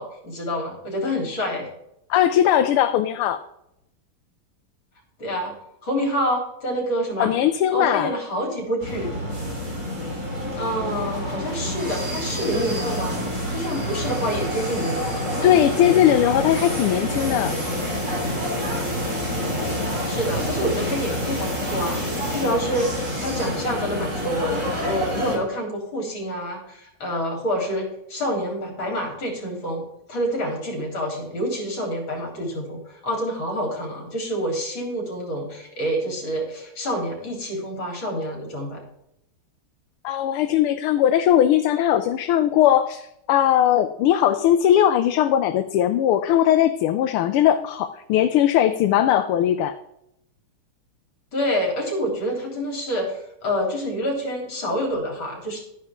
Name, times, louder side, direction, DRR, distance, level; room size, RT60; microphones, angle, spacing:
voice 1, 0.0-1.7 5.2-5.6 5.8-7.3 7.7-9.1 10.6-13.2 13.5-15.3 20.0-29.8 30.1-38.9 51.3-55.6, equal, 60° left, 0 dB, 4.3 m, -27 dB
voice 2, 2.1-3.4 7.2-8.1 15.4-17.5 40.0-49.7, left 11 dB, 80° left, 9 dB, 1.5 m, -19 dB
sound 1, 8.8-25.4, equal, 35° right, 3.6 m, -27 dB
12.0 x 10.0 x 3.7 m, 0.79 s
omnidirectional pair, 2.4 m